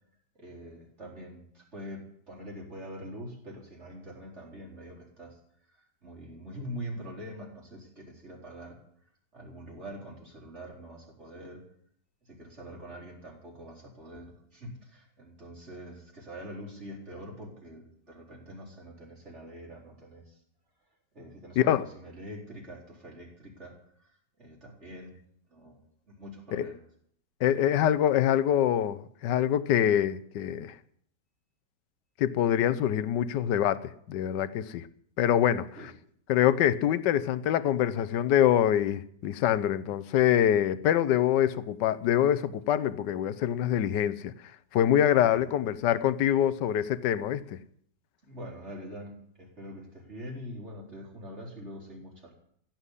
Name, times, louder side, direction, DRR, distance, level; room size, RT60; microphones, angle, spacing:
voice 1, 0.4-5.4 5.7-8.8 9.3-11.6 12.2-20.4 21.1-24.1 24.4-25.2 25.5-25.8 26.1-26.8 35.8-35.9 45.2-45.6 48.2-52.3, equal, 40° right, 4.5 m, -44 dB
voice 2, 27.4-30.7 32.2-34.9 35.2-35.7 36.3-44.3 44.7-47.6, left 10 dB, 80° left, 1.4 m, -25 dB
16.0 x 7.7 x 9.8 m
omnidirectional pair, 1.9 m